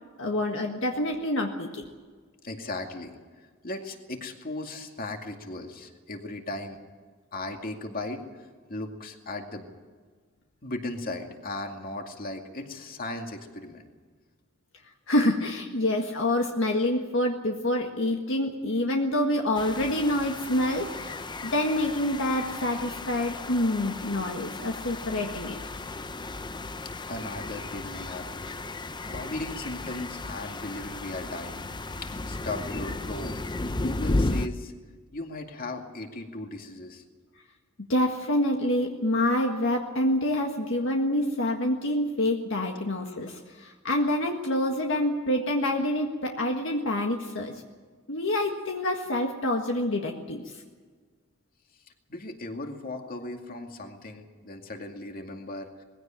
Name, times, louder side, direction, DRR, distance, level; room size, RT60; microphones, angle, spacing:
voice 1, 0.2-1.8 15.1-25.6 37.9-47.5 48.1-50.6, left 1 dB, 65° left, 2 dB, 1.7 m, -27 dB
voice 2, 2.4-3.1 3.6-6.8 7.3-9.7 10.6-13.9 27.0-28.4 29.0-31.6 32.0-33.3 33.7-34.7 35.1-37.0 52.1-55.7, left 2 dB, 45° left, 4 dB, 2.3 m, -37 dB
sound 1, 19.5-34.5, left 2 dB, 20° left, 0.7 m, -34 dB
20.5 x 16.5 x 9.0 m, 1.5 s
head